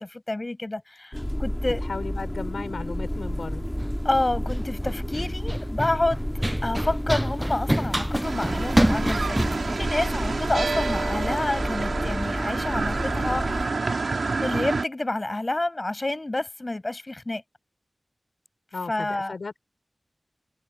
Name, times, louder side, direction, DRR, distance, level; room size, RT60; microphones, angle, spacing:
voice 1, 0.0-1.9 4.0-9.4 9.8-13.7 14.4-17.4 18.9-19.3, left 2 dB, 40° left, 6.7 m, -29 dB
sound 1, 1.1-13.7, equal, 10° left, 3.7 m, -31 dB
voice 2, 1.9-3.6 5.1-5.3 18.7-19.6, left 4 dB, 85° left, 4.6 m, -35 dB
Run, 3.1-11.0, equal, 10° right, 0.6 m, -29 dB
sound 2, 8.2-14.8, right 3 dB, 80° right, 2.9 m, -28 dB
cardioid pair, 45°, 0 cm